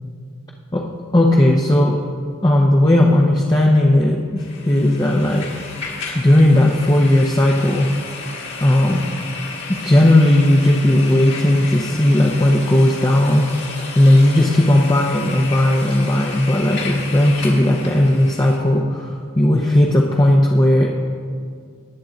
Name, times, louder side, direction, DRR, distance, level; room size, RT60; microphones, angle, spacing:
voice 1, 1.1-2.0 2.4-5.5 6.1-7.9 8.6-9.0 9.7-13.4 13.9-20.9, left 1 dB, 20° left, -2 dB, 0.7 m, -15 dB
sound 1, 4.4-18.6, left 4 dB, 55° left, 1.8 m, -33 dB
19.5 x 7.7 x 3.9 m, 2.2 s
head